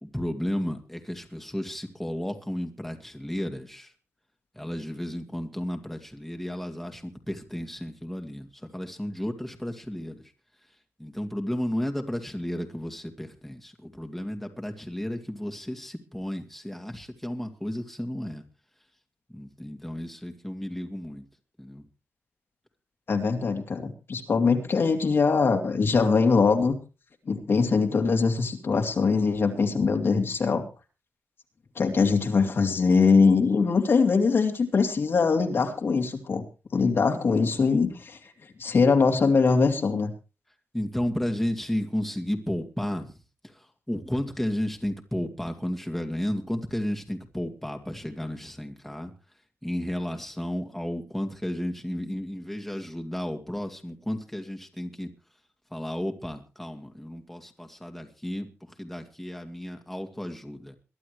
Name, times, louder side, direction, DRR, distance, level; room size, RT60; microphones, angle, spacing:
voice 1, 0.0-3.9 4.6-10.2 11.0-18.4 19.3-21.2 21.6-21.8 40.7-43.1 43.4-49.1 49.6-55.1 55.7-60.8, equal, 5° left, 3 dB, 2.4 m, -33 dB
voice 2, 23.1-26.8 27.3-30.6 31.8-36.4 36.7-38.2 38.6-40.1, left 4 dB, 55° left, 3 dB, 2.9 m, -22 dB
23.0 x 11.5 x 3.3 m, 0.31 s
wide cardioid pair, 100°, 5 cm